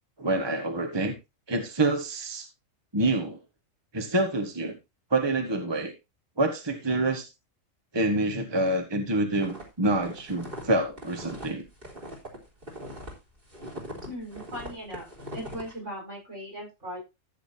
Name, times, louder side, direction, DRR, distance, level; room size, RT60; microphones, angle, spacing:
voice 1, 0.2-1.1 1.5-2.5 2.9-3.4 3.9-4.8 5.1-5.9 6.4-7.3 7.9-11.7, right 2 dB, 20° right, 5 dB, 1.4 m, -27 dB
sound 1, 9.4-13.1 13.4-15.7, equal, 45° right, 3.8 m, -41 dB
voice 2, 14.1-17.0, equal, 65° right, -2 dB, 7.0 m, -39 dB
14.5 x 8.2 x 2.7 m, 0.24 s
omnidirectional pair, 1.3 m